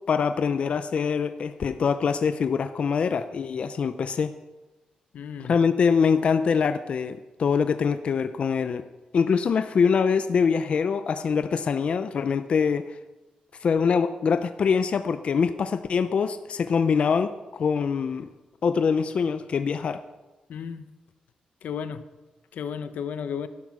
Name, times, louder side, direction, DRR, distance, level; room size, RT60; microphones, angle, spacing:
voice 1, 0.1-4.3 5.5-8.8 9.1-12.9 13.6-17.3 17.6-18.3 18.6-20.0, left 6 dB, 50° left, 10 dB, 0.5 m, -24 dB
voice 2, 5.1-5.5 20.5-20.8 21.6-22.0 22.5-23.5, left 7 dB, 85° left, 11 dB, 0.8 m, -33 dB
12.0 x 11.0 x 6.0 m, 1.1 s
wide cardioid pair, 165°, 3 cm